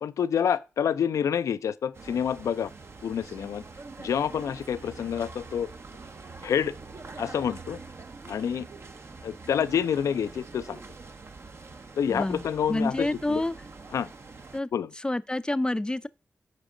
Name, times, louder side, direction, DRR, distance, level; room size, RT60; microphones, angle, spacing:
voice 1, 0.0-2.7 3.0-3.6 4.0-5.7 6.4-6.7 7.2-7.8 8.3-8.7 9.2-10.8 12.0-13.4 13.9-14.1 14.7-14.9, left 8 dB, 80° left, 0.4 m, -28 dB
sound 1, 1.9-14.6, right 3 dB, 55° right, 0.9 m, -45 dB
voice 2, 12.1-13.5 14.5-14.7 15.0-16.1, left 1 dB, 15° left, 0.4 m, -28 dB
9.7 x 5.2 x 3.8 m
cardioid pair, 45°, 5 cm